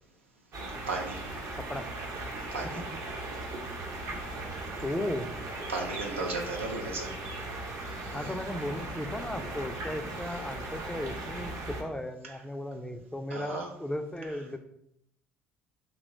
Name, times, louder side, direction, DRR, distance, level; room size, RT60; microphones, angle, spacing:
sound 1, 0.5-11.8, right 2 dB, 50° right, 0.7 m, -38 dB
voice 1, 0.9-1.2 2.5-2.8 5.7-7.1 12.2-12.3 13.3-13.7, right 3 dB, 90° right, 1 dB, 0.4 m, -34 dB
voice 2, 4.8-5.4 8.1-14.6, left 1 dB, 10° left, 7 dB, 0.3 m, -35 dB
2.9 x 2.1 x 3.8 m, 0.75 s
hypercardioid pair, 55°, 7 cm